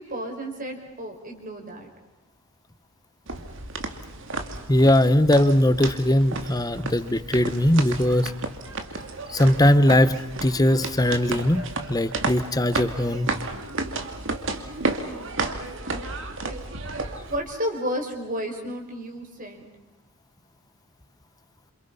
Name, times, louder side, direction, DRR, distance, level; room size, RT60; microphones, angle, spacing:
voice 1, 0.0-1.9 15.1-16.6 17.3-19.7, equal, 40° right, 3 dB, 5.3 m, -33 dB
sound 1, 3.3-17.4, right 3 dB, 55° right, 2.5 m, -32 dB
voice 2, 4.7-8.3 9.3-13.3, left 1 dB, 15° left, 13 dB, 1.0 m, -20 dB
28.5 x 27.5 x 5.6 m, 0.98 s
head